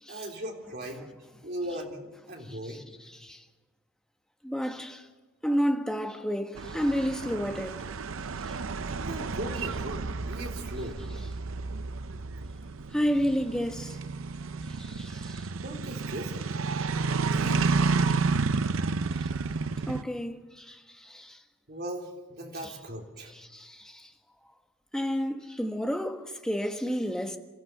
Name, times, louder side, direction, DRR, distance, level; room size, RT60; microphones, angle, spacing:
voice 1, 0.1-1.1 1.4-2.9 9.0-11.0 15.3-16.5 17.1-17.8 21.7-23.3, equal, 50° right, 3.4 m, -38 dB
voice 2, 3.1-3.4 4.4-5.1 5.4-7.8 8.5-8.6 12.9-14.0 14.8-15.5 19.2-19.3 19.9-21.4 22.6-22.7 23.3-24.1 24.9-27.4, equal, 5° left, 1.2 m, -31 dB
sound 1, 6.6-20.0, right 4 dB, 80° right, 0.6 m, -31 dB
27.0 x 14.5 x 6.8 m
head